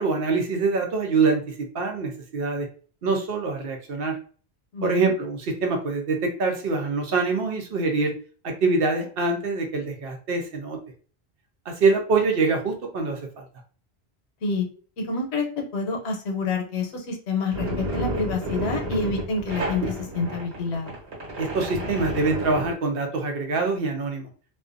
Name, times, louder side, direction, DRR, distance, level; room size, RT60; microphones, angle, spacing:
voice 1, 0.0-2.7 3.0-4.2 4.8-8.1 8.4-10.8 11.7-13.4 21.4-24.3, right 3 dB, 65° right, 4 dB, 0.7 m, -24 dB
voice 2, 4.7-5.1 14.4-14.7 15.0-20.9, left 4 dB, 85° left, 2 dB, 0.9 m, -28 dB
sound 1, 17.5-22.7, right 1 dB, 90° right, 1.3 m, -31 dB
2.4 x 2.2 x 2.4 m, 0.41 s
omnidirectional pair, 1.1 m